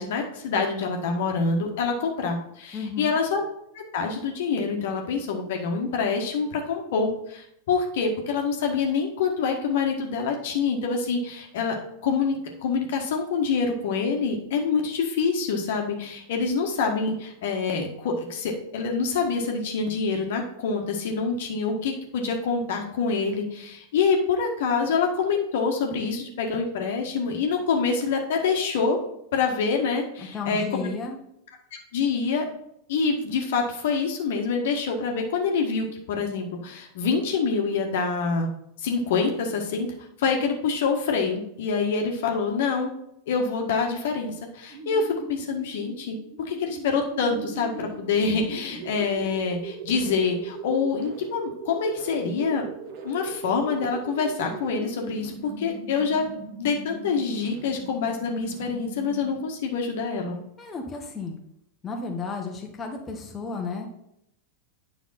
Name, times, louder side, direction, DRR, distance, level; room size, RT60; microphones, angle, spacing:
voice 1, 0.0-3.4 3.7-11.8 12.0-29.0 29.3-30.9 31.7-32.5 32.9-38.5 38.8-39.9 40.2-42.9 43.3-46.2 46.4-52.6 53.0-56.2 56.6-60.4, left 5 dB, 55° left, 2 dB, 1.6 m, -26 dB
voice 2, 2.7-3.1 30.3-31.2 60.6-61.4 61.8-63.9, left 4 dB, 20° left, 1 dB, 1.4 m, -33 dB
sound 1, 44.7-59.6, right 5 dB, 45° right, 1.4 m, -39 dB
9.5 x 5.8 x 4.3 m, 0.78 s
figure-of-eight pair, 90°, 0 cm